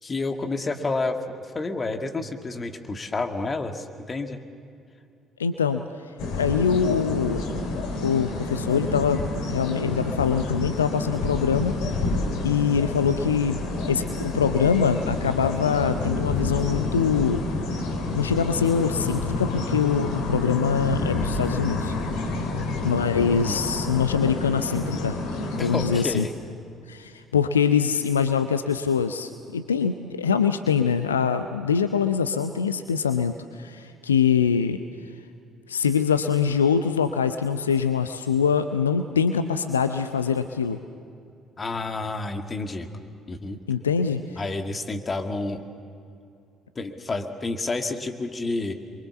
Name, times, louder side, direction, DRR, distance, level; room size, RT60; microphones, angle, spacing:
voice 1, 0.0-4.4 23.2-23.7 25.6-26.3 41.6-42.9 43.3-43.6 44.4-45.7 46.8-48.7, left 3 dB, 30° left, 5 dB, 2.0 m, -30 dB
voice 2, 5.4-5.8 6.3-7.4 8.0-9.2 9.5-11.7 12.4-13.6 13.9-17.4 18.1-21.9 22.8-25.2 25.6-26.2 26.9-34.8 35.7-40.8 43.7-44.2, left 6 dB, 80° left, 9 dB, 0.6 m, -23 dB
sound 1, 6.2-26.0, left 2 dB, 60° left, 3.0 m, -29 dB
26.5 x 23.0 x 7.1 m, 2.5 s
figure-of-eight pair, 50°, 0 cm